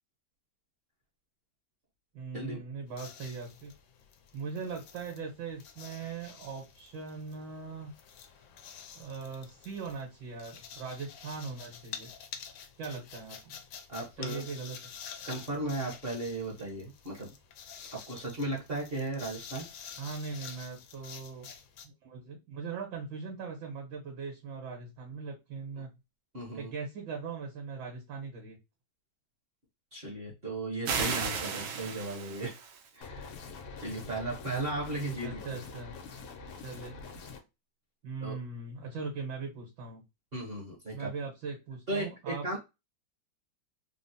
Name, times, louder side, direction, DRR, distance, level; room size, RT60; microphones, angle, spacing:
voice 1, 2.1-3.7 4.3-7.9 8.9-12.1 12.8-13.6 14.2-14.8 20.0-21.5 21.8-25.9 26.5-28.6 35.2-36.0 36.6-37.1 38.0-40.0 40.9-42.6, right 5 dB, 70° right, 1 dB, 1.6 m, -40 dB
sound 1, 2.9-21.9, left 7 dB, 70° left, 1.1 m, -49 dB
voice 2, 13.9-14.4 15.2-17.3 17.8-19.7 26.3-26.7 29.9-32.6 32.9-33.3 33.8-35.6 38.2-38.4 40.3-41.1 41.9-42.6, right 2 dB, 50° right, -3 dB, 0.6 m, -36 dB
sound 2, 30.9-32.9, right 6 dB, 90° right, 1.4 m, -34 dB
sound 3, 33.0-37.4, left 4 dB, 90° left, 1.5 m, -45 dB
3.8 x 2.0 x 2.6 m, 0.24 s
omnidirectional pair, 2.1 m